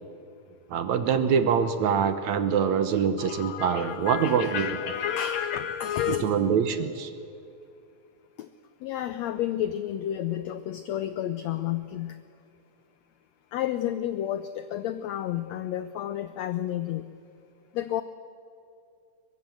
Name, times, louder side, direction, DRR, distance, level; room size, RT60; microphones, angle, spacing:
voice 1, 0.7-4.7 6.1-7.1, right 7 dB, 65° right, 10 dB, 2.0 m, -24 dB
voice 2, 3.2-6.3 8.4-8.5 8.8-12.2 13.5-17.0 17.7-18.0, left 11 dB, 85° left, 12 dB, 1.5 m, -31 dB
23.5 x 21.5 x 7.7 m, 2.6 s
omnidirectional pair, 3.9 m